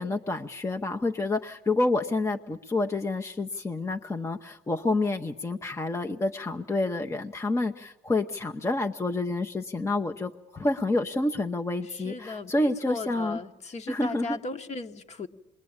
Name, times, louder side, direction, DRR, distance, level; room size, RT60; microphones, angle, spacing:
voice 1, 0.0-13.4 13.9-14.4, left 2 dB, 15° left, 5 dB, 0.9 m, -28 dB
voice 2, 11.9-15.3, left 2 dB, 40° left, 7 dB, 1.5 m, -37 dB
27.0 x 22.0 x 8.8 m, 0.96 s
cardioid pair, 110°, 17 cm